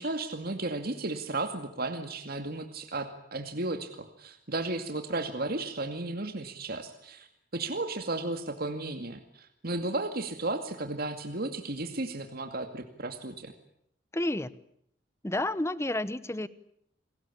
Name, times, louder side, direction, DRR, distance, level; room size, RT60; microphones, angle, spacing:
voice 1, 0.0-7.3 7.5-13.5, right 2 dB, 55° right, 6 dB, 2.3 m, -34 dB
voice 2, 14.1-14.5 15.2-16.5, left 1 dB, 15° left, 16 dB, 1.1 m, -30 dB
29.0 x 21.5 x 8.6 m, 0.72 s
head